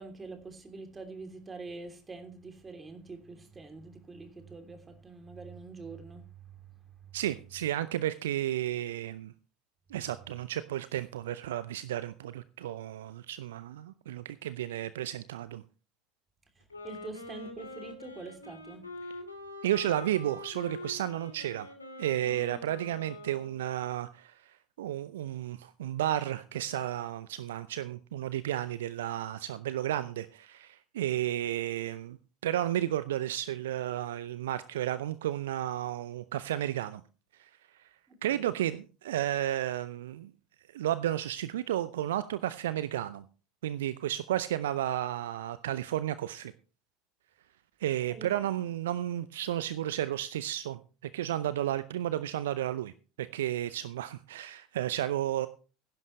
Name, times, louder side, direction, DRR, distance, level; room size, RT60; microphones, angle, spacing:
voice 1, 0.0-7.2 16.5-18.9 38.1-38.5 48.1-48.3, right 3 dB, 20° right, 3.1 m, -45 dB
voice 2, 7.1-9.3 9.9-15.6 19.6-21.7 22.0-32.2 32.4-37.0 37.4-37.5 37.8-37.9 38.2-40.3 40.7-43.2 43.6-46.5 47.8-50.8 51.1-52.9 53.2-55.5, right 12 dB, 65° right, 0.6 m, -32 dB
Wind instrument woodwind instrument, 16.6-23.8, left 2 dB, 85° left, 2.4 m, -44 dB
16.0 x 11.0 x 3.2 m
figure-of-eight pair, 70°, 0 cm